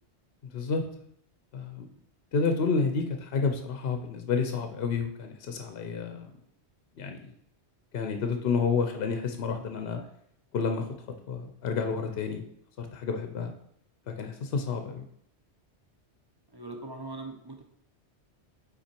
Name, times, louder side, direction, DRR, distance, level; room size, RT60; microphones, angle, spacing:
voice 1, 0.5-0.8 1.5-1.9 2.3-6.3 7.0-7.3 7.9-10.0 10.5-10.9 11.3-12.4 12.8-13.5 14.1-15.0, left 5 dB, 65° left, 6 dB, 0.8 m, -30 dB
voice 2, 16.5-17.6, right 2 dB, 25° right, 3 dB, 0.7 m, -41 dB
5.7 x 4.4 x 4.4 m, 0.70 s
omnidirectional pair, 1.1 m